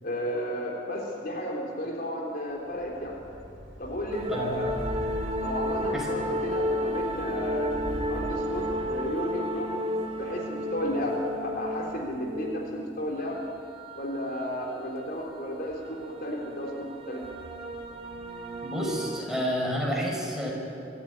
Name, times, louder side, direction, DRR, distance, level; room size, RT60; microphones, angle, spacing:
voice 1, 0.0-3.2 3.8-4.8 5.4-7.8 8.1-13.4 13.9-17.2, equal, 50° left, 0 dB, 3.6 m, -33 dB
sound 1, 2.7-9.1, right 1 dB, 80° right, 2.9 m, -38 dB
sound 2, 4.1-19.2, equal, 30° right, 1.9 m, -34 dB
voice 2, 18.6-20.5, equal, ahead, -3 dB, 5.4 m, -29 dB
25.5 x 14.5 x 9.7 m, 2.6 s
head